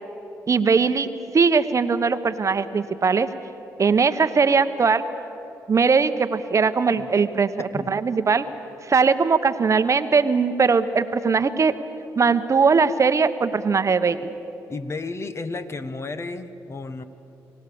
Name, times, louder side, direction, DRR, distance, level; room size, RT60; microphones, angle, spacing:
voice 1, 0.5-1.1 1.3-3.3 3.8-5.0 5.7-8.4 8.9-11.7 12.2-14.2, right 5 dB, 45° right, 11 dB, 1.0 m, -20 dB
voice 2, 14.7-17.0, left 3 dB, 40° left, 10 dB, 1.3 m, -32 dB
26.0 x 16.5 x 7.0 m, 2.9 s
supercardioid pair, 55°, 7 cm